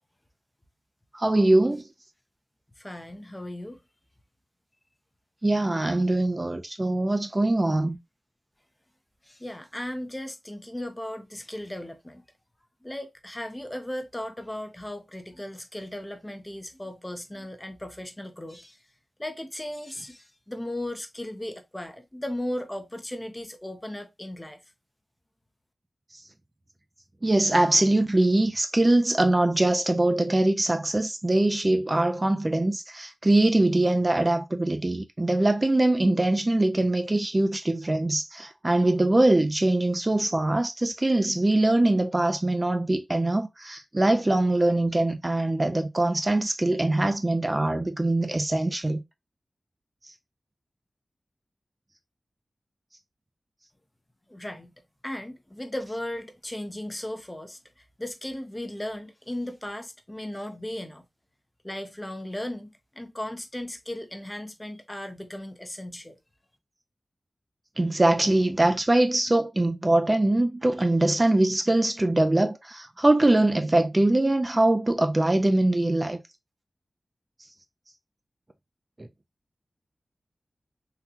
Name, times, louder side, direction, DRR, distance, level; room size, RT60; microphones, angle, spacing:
voice 1, 1.1-1.9 5.4-8.0 27.2-49.0 67.8-76.2, right 2 dB, 25° right, 0.4 m, -23 dB
voice 2, 2.8-3.8 9.3-12.2 12.8-18.8 19.2-24.6 54.3-54.7 55.0-57.6 58.0-61.0 61.6-66.2, left 1 dB, 15° left, 0.6 m, -36 dB
3.7 x 2.2 x 2.7 m
wide cardioid pair, 85°, 0 cm